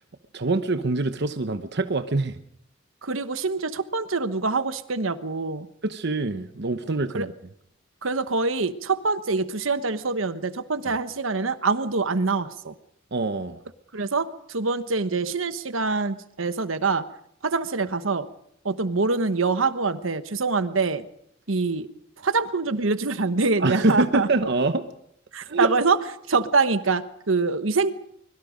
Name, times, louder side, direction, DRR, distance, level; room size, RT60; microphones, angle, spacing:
voice 1, 0.3-2.4 5.8-7.3 13.1-13.6 23.6-24.8 25.5-25.7, right 3 dB, 60° right, 9 dB, 1.0 m, -24 dB
voice 2, 3.0-5.7 7.1-7.3 8.0-12.7 13.9-17.1 17.4-18.3 18.6-21.0 21.5-21.9 22.2-24.3 25.3-26.0 26.3-27.9, right 4 dB, 85° right, 12 dB, 1.2 m, -25 dB
24.0 x 22.5 x 5.2 m, 0.73 s
head